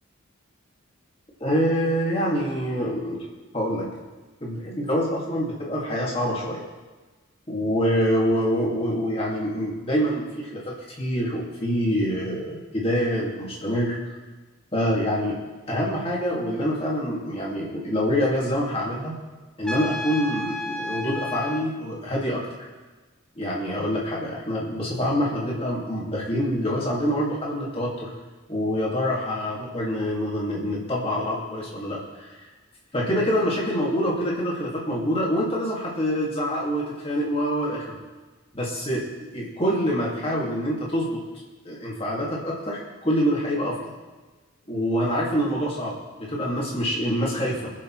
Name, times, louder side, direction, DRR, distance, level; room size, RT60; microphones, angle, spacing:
voice 1, 1.4-3.2 3.5-3.9 4.4-6.6 7.5-14.0 14.7-15.4 15.7-19.1 19.6-22.7 23.4-28.1 28.5-32.5 32.9-38.0 38.5-41.2 41.7-43.8 44.7-47.7, equal, 25° left, -3 dB, 2.0 m, -26 dB
Trumpet, 19.6-21.7, left 2 dB, 5° left, 0.5 m, -32 dB
22.0 x 7.7 x 3.1 m, 1.2 s
head